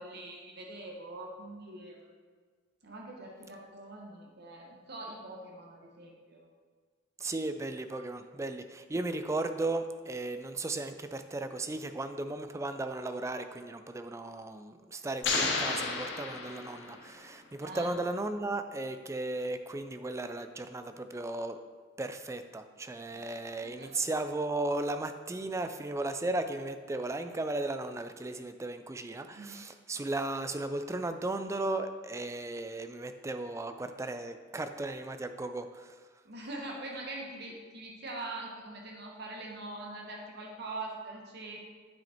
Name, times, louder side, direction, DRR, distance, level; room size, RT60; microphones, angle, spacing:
voice 1, 0.0-2.1 2.8-6.4 17.6-17.9 23.6-23.9 29.3-29.6 36.2-41.7, right 2 dB, 55° right, -1 dB, 1.1 m, -43 dB
voice 2, 7.2-21.6 22.0-35.9, right 2 dB, 15° right, 9 dB, 0.3 m, -35 dB
sound 1, 15.2-17.1, left 4 dB, 60° left, 1.1 m, -32 dB
9.1 x 5.3 x 4.3 m, 1.5 s
head